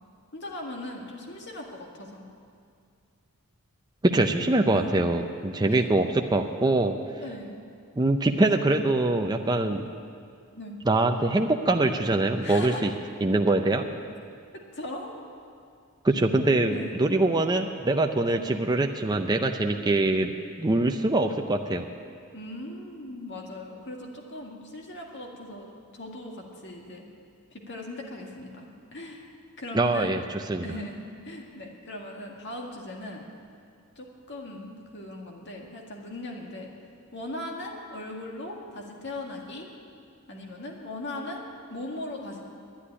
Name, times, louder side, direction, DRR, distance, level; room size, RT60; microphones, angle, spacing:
voice 1, 0.3-2.2 4.6-5.0 5.6-6.0 7.2-7.6 10.5-10.8 12.4-12.8 14.7-15.1 16.7-16.9 22.3-27.1 27.5-29.3 29.6-30.1 30.6-33.3 34.0-36.7 37.1-39.7 40.3-42.5, left 1 dB, 55° left, 0 dB, 2.0 m, -39 dB
voice 2, 4.0-6.9 8.0-9.9 10.9-12.9 13.2-13.9 16.0-20.3 20.6-21.8 29.7-30.6, right 2 dB, 20° right, 4 dB, 0.5 m, -23 dB
11.5 x 10.0 x 9.9 m, 2.3 s
head